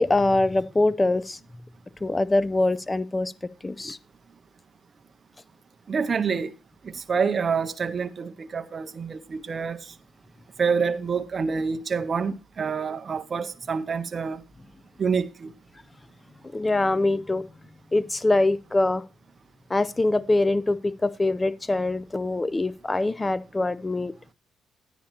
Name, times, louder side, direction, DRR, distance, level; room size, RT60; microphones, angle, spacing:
voice 1, 0.0-1.4 2.0-3.3 3.6-4.0 16.5-17.4 17.9-19.0 19.7-24.3, left 2 dB, 20° left, 0.4 m, -23 dB
voice 2, 5.9-6.5 6.8-9.9 10.6-14.4 15.0-15.5, right 5 dB, 40° right, 0.5 m, -27 dB
9.9 x 9.8 x 2.9 m
cardioid pair, 90°, 0 cm